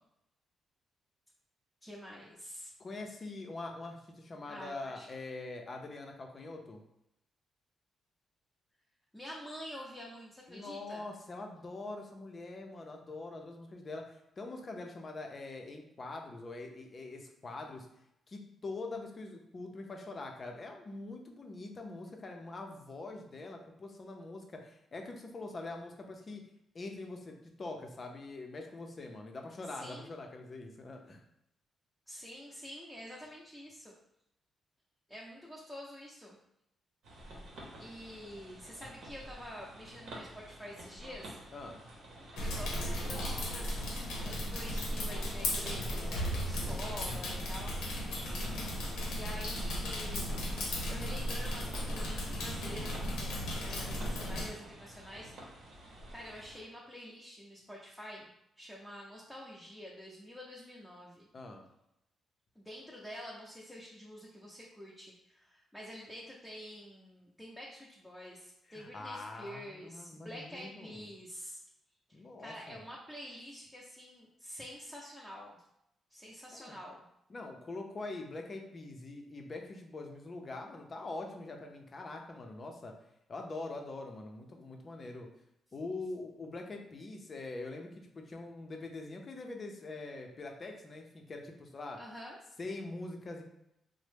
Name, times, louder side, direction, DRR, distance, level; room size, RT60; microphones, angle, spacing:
voice 1, 1.8-2.7 4.5-5.1 9.1-11.0 29.7-30.1 32.1-33.9 35.1-36.4 37.8-41.4 42.4-43.9 44.2-47.8 49.1-50.4 50.9-55.7 56.1-61.3 62.6-71.6 72.1-75.6 76.1-77.1 92.0-92.4, equal, 5° left, -5 dB, 0.7 m, -48 dB
voice 2, 2.8-6.8 10.5-17.9 18.3-26.4 26.7-31.2 41.5-41.8 61.3-61.6 68.7-71.1 72.1-72.8 76.5-76.7 77.3-82.9 83.3-85.3 85.7-87.9 88.1-92.0 92.6-93.4, left 2 dB, 45° left, 3 dB, 0.6 m, -43 dB
sound 1, 37.0-56.6, right 1 dB, 80° right, 0.8 m, -51 dB
sound 2, 42.4-54.5, equal, 90° left, 0.7 m, -36 dB
2.9 x 2.1 x 3.3 m, 0.81 s
supercardioid pair, 60°, 0 cm